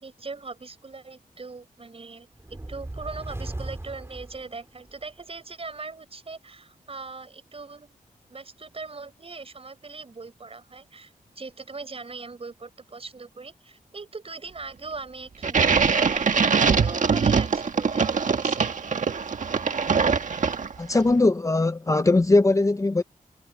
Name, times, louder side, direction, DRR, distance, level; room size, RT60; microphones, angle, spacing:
voice 1, 0.0-8.0 8.3-16.3 16.8-18.7, right 4 dB, 40° right, 6.2 m, -40 dB
sound 1, 2.4-5.1, right 1 dB, 15° right, 4.9 m, -37 dB
sound 2, 15.4-20.9, right 5 dB, 60° right, 1.5 m, -22 dB
voice 2, 20.8-23.0, left 2 dB, 20° left, 0.7 m, -20 dB
wide cardioid pair, 100°, 15 cm